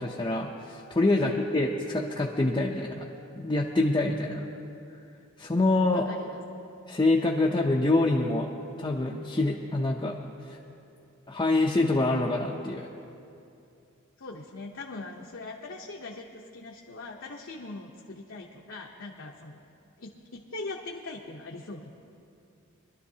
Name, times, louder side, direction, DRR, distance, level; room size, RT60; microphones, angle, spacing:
voice 1, 0.0-3.1 3.3-4.5 5.4-6.0 6.9-8.5 8.8-10.1 10.5-10.6 11.3-12.9, left 2 dB, 20° left, -2 dB, 0.6 m, -26 dB
voice 2, 5.9-6.4 14.2-19.7 20.0-21.9, left 3 dB, 60° left, -1 dB, 0.8 m, -41 dB
22.5 x 12.0 x 2.8 m, 2.6 s
head